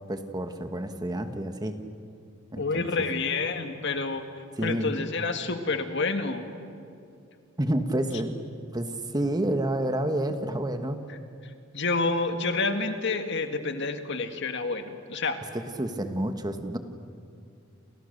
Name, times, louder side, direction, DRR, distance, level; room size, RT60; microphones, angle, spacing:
voice 1, 0.0-1.7 2.5-2.9 4.6-4.9 7.6-8.4 8.7-11.0 15.5-16.8, right 1 dB, 20° right, 7 dB, 1.4 m, -29 dB
voice 2, 2.6-6.5 11.7-15.4, left 3 dB, 60° left, 7 dB, 1.9 m, -29 dB
29.5 x 29.0 x 6.7 m, 2.4 s
head